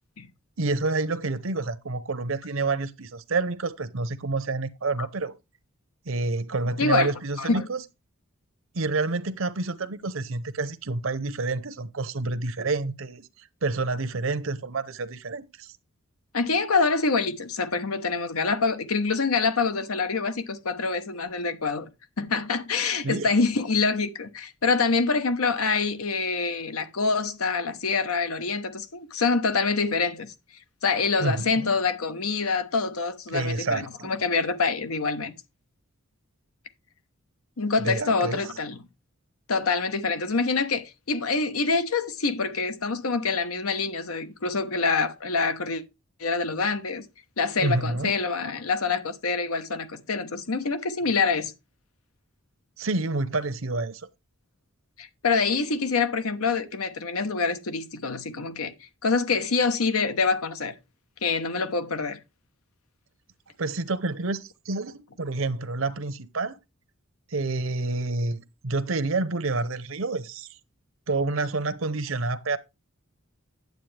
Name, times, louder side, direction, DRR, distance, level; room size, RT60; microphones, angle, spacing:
voice 1, 0.6-5.3 6.1-7.8 8.7-13.3 13.6-15.7 23.0-23.3 31.2-31.7 33.3-34.1 37.8-38.4 47.6-48.1 52.8-54.0 63.6-66.6 67.3-70.5 71.1-72.6, right 3 dB, 70° right, 0.8 m, -28 dB
voice 2, 6.8-7.1 7.4-7.7 16.3-21.9 22.2-30.3 30.8-35.3 37.6-38.8 39.5-45.8 46.2-47.0 47.4-51.5 55.0-58.7 59.0-60.7 61.2-62.2, left 4 dB, 85° left, 1.0 m, -26 dB
9.3 x 7.8 x 3.3 m
head